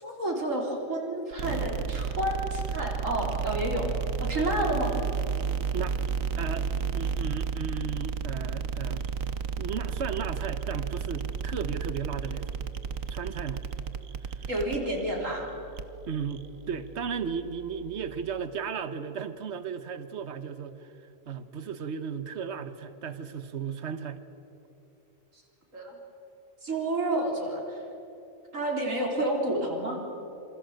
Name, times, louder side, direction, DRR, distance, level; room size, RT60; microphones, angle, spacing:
voice 1, 0.0-3.9 4.2-5.0 14.5-15.5 25.7-26.0 26.6-27.8 28.5-30.0, right 1 dB, 75° right, 0 dB, 4.1 m, -30 dB
sound 1, 1.3-18.4, right 6 dB, 90° right, 1.5 m, -33 dB
voice 2, 6.3-6.7 6.9-9.1 9.6-12.5 13.1-13.6 14.2-14.5 16.1-20.9 21.3-24.2, right 6 dB, 60° right, 11 dB, 1.5 m, -35 dB
27.5 x 25.5 x 8.0 m, 3.0 s
omnidirectional pair, 1.4 m